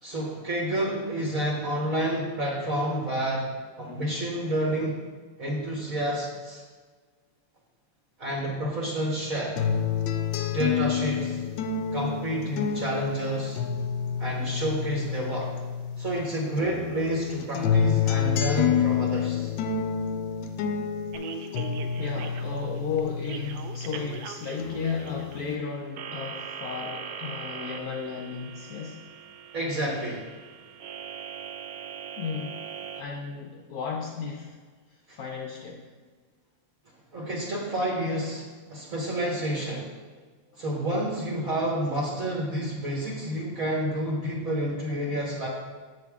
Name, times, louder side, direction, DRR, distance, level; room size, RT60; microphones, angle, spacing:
voice 1, 0.0-3.5 3.8-5.0 5.4-6.6 8.2-9.6 10.5-11.4 11.9-13.6 14.2-15.5 16.0-19.5 29.5-30.2 35.1-35.2 37.1-39.9 40.6-45.5, right 1 dB, 50° right, -3 dB, 1.5 m, -29 dB
sound 1, 9.6-16.2 16.6-24.2 24.6-25.6, left 7 dB, 80° left, 1.3 m, -28 dB
sound 2, 21.1-33.0, right 7 dB, 70° right, 1.0 m, -41 dB
voice 2, 22.0-29.0 32.2-32.6 33.0-34.6 35.1-35.9 40.5-40.6, left 6 dB, 65° left, 0 dB, 1.0 m, -34 dB
7.6 x 6.9 x 3.6 m, 1.4 s
omnidirectional pair, 2.0 m